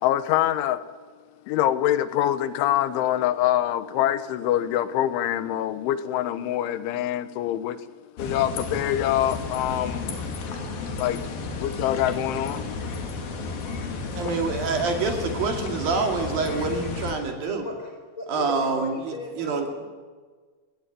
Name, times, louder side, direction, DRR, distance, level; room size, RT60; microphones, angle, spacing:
voice 1, 0.0-0.8 1.5-7.8 8.2-10.2 11.0-11.2 11.6-12.8, left 12 dB, 90° left, 13 dB, 3.5 m, -25 dB
sound 1, 8.2-17.2, left 3 dB, 55° left, 4.0 m, -32 dB
voice 2, 14.1-17.7 18.3-19.7, right 4 dB, 55° right, 4 dB, 3.8 m, -26 dB
voice 3, 18.2-19.9, left 2 dB, 15° left, 3 dB, 5.5 m, -37 dB
28.5 x 17.0 x 9.1 m, 1.5 s
omnidirectional pair, 5.3 m